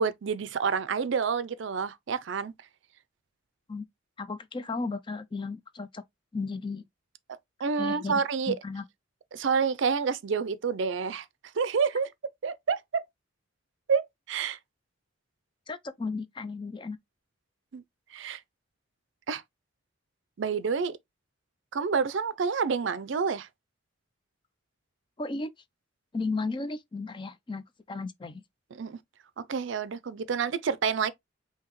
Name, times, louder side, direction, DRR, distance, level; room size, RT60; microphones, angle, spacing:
voice 1, 0.0-2.5 7.6-8.6 9.3-11.3 11.6-12.1 12.4-13.0 13.9-14.6 17.7-17.8 18.1-18.4 19.3-19.4 20.4-21.0 21.7-23.5 28.7-29.0 29.5-31.1, right 5 dB, 65° right, 0.4 m, -28 dB
voice 2, 4.2-6.0 6.3-6.9 7.8-8.8 15.7-17.0 25.2-25.5 26.1-28.4, left 3 dB, 25° left, 0.4 m, -34 dB
5.7 x 2.8 x 3.0 m
head